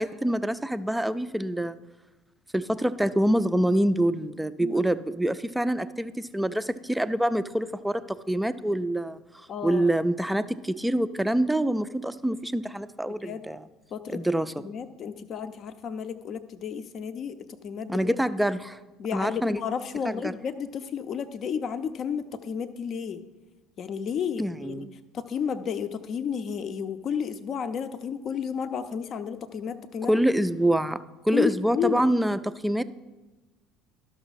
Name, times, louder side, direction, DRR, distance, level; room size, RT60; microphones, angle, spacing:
voice 1, 0.0-1.8 2.5-9.2 9.6-13.7 14.1-14.5 17.9-18.8 19.1-19.6 20.0-20.3 24.4-24.9 30.1-32.8, right 1 dB, 5° right, 13 dB, 0.4 m, -26 dB
voice 2, 9.5-9.9 13.2-13.4 13.9-14.2 14.6-17.4 17.6-18.2 19.0-23.2 23.8-24.8 25.1-30.1 31.3-32.0, left 7 dB, 45° left, 10 dB, 0.6 m, -32 dB
12.5 x 6.2 x 4.1 m, 1.1 s
figure-of-eight pair, 60°, 0 cm